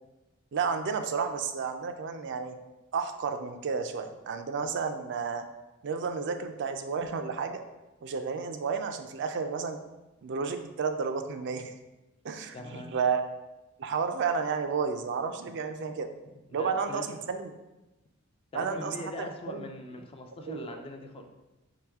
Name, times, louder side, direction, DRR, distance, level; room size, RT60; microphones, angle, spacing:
voice 1, 0.5-2.6 2.9-5.4 5.8-7.6 8.0-9.8 10.2-11.7 12.2-13.2 13.8-16.1 16.5-17.5 18.5-19.7 20.5-20.8, right 5 dB, 60° right, 7 dB, 0.4 m, -32 dB
voice 2, 12.5-12.9 15.8-16.0 16.5-17.3 18.5-21.3, left 2 dB, 25° left, 5 dB, 0.4 m, -42 dB
4.8 x 3.0 x 3.5 m, 1.0 s
head